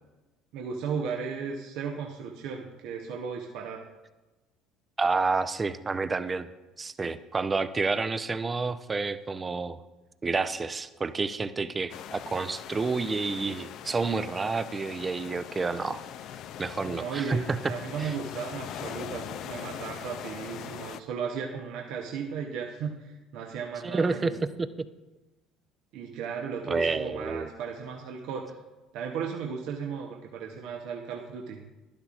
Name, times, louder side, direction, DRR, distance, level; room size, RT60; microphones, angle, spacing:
voice 1, 0.5-3.9 16.8-24.4 25.9-28.6 28.9-31.6, right 6 dB, 70° right, 1 dB, 0.9 m, -35 dB
voice 2, 5.0-6.5 6.8-9.8 10.2-16.0 16.6-18.1 23.8-24.3 24.6-24.7 26.7-27.5, right 4 dB, 25° right, 12 dB, 0.6 m, -29 dB
sound 1, 11.9-21.0, left 10 dB, 60° left, 0.4 m, -41 dB
12.0 x 11.5 x 2.5 m, 1.1 s
hypercardioid pair, 65°, 0 cm